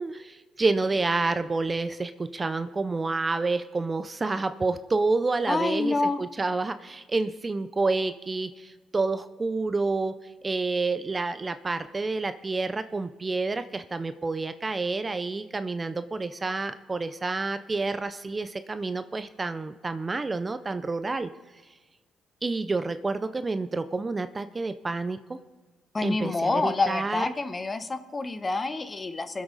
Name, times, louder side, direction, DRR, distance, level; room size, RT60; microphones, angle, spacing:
voice 1, 0.0-10.1 10.4-21.3 22.4-25.4 26.0-27.2, right 3 dB, 25° right, 11 dB, 0.5 m, -29 dB
voice 2, 5.5-6.2 25.9-29.4, left 3 dB, 25° left, 10 dB, 1.0 m, -27 dB
23.0 x 8.0 x 4.0 m, 1.3 s
cardioid pair, 90°, 0 cm